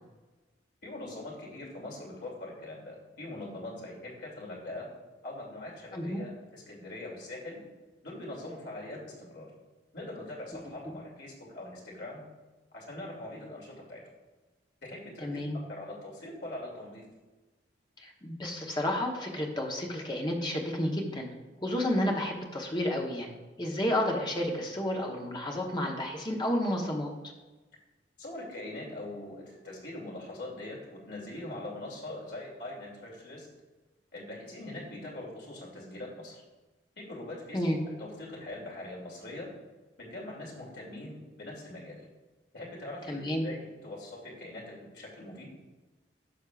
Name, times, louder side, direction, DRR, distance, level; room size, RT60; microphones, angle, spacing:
voice 1, 0.8-4.9 5.2-7.6 8.0-9.5 9.9-12.2 12.7-14.0 14.8-15.4 15.7-17.1 28.2-33.5 34.1-36.4 37.0-39.5 40.0-42.1 42.5-45.5, left 1 dB, 65° left, -3 dB, 2.6 m, -42 dB
voice 2, 15.2-15.6 18.0-21.3 21.6-27.3 37.5-37.8 43.1-43.5, left 1 dB, 25° left, 1 dB, 1.0 m, -31 dB
11.5 x 6.3 x 2.4 m, 1.2 s
head